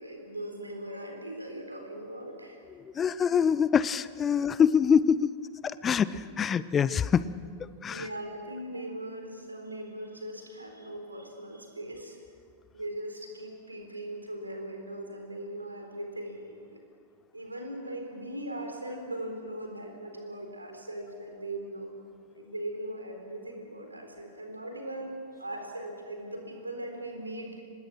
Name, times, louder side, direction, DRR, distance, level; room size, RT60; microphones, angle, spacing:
voice 1, 0.0-2.6 7.9-12.2 12.7-16.8 17.3-21.9 22.3-25.1 25.4-27.6, right 1 dB, 85° right, 3 dB, 4.0 m, -39 dB
voice 2, 2.8-5.3 5.6-7.3 7.6-8.1, left 7 dB, 25° left, 17 dB, 0.7 m, -25 dB
26.0 x 20.0 x 6.2 m, 2.2 s
figure-of-eight pair, 90°, 0 cm